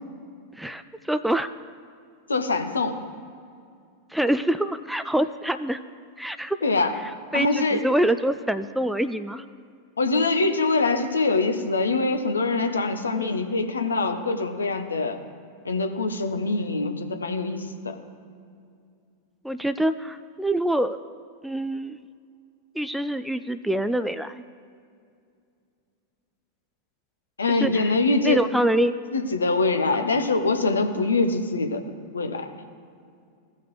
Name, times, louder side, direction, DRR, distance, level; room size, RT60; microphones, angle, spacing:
voice 1, 0.6-1.5 4.1-5.8 6.2-6.6 7.3-9.4 13.2-13.4 19.4-21.0 21.4-22.0 22.8-24.4 27.5-27.9 28.2-29.0 29.9-30.0, right 1 dB, ahead, 12 dB, 0.3 m, -25 dB
voice 2, 2.3-3.0 6.6-6.9 7.3-7.8 10.0-15.2 15.6-18.0 27.4-28.4 29.1-31.8 32.1-32.5, left 3 dB, 75° left, 6 dB, 0.8 m, -24 dB
16.5 x 5.7 x 3.1 m, 2.3 s
figure-of-eight pair, 90°, 0 cm